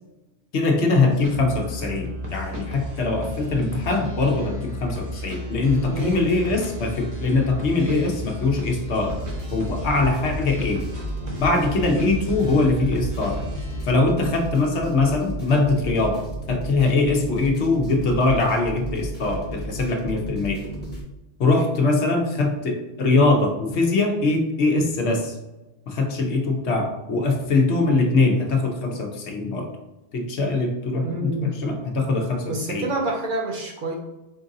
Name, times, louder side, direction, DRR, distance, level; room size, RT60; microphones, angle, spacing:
voice 1, 0.5-9.2 9.5-10.9 11.4-13.4 13.9-20.6 21.4-25.3 25.9-29.7 30.1-32.9, left 3 dB, 70° left, 3 dB, 1.0 m, -22 dB
sound 1, 1.1-13.9, left 1 dB, 30° right, 1.0 m, -33 dB
voice 2, 5.9-6.2 31.0-31.5 32.5-33.9, right 2 dB, 50° right, 0 dB, 0.7 m, -27 dB
sound 2, 9.0-21.0, right 1 dB, 10° left, 0.9 m, -34 dB
4.5 x 2.6 x 3.8 m, 1.0 s
omnidirectional pair, 1.2 m